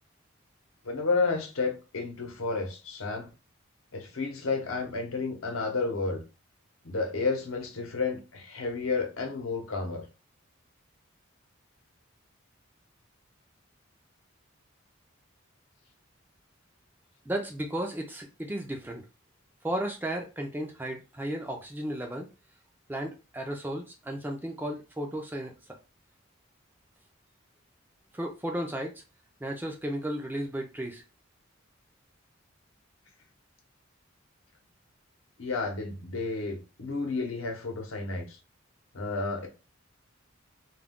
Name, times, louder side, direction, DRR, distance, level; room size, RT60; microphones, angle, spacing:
voice 1, 0.8-3.3 3.9-6.2 6.8-10.0 35.4-38.4 38.9-39.5, left 4 dB, 85° left, 0.8 m, -31 dB
voice 2, 17.3-19.0 19.6-22.3 22.9-25.5 28.1-28.9 29.4-31.0, right 1 dB, 10° right, 0.3 m, -34 dB
2.3 x 2.1 x 3.6 m
head